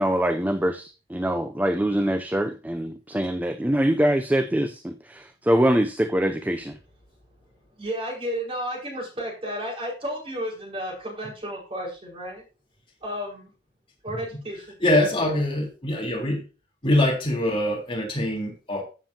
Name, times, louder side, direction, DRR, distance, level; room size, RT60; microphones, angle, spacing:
voice 1, 0.0-6.8, right 1 dB, 10° right, 0.4 m, -24 dB
voice 2, 7.7-12.4 13.0-13.5 14.0-14.8, equal, 35° right, 5.1 m, -32 dB
voice 3, 14.8-16.4 16.8-18.8, left 1 dB, 30° left, 3.7 m, -23 dB
14.5 x 7.4 x 2.8 m
head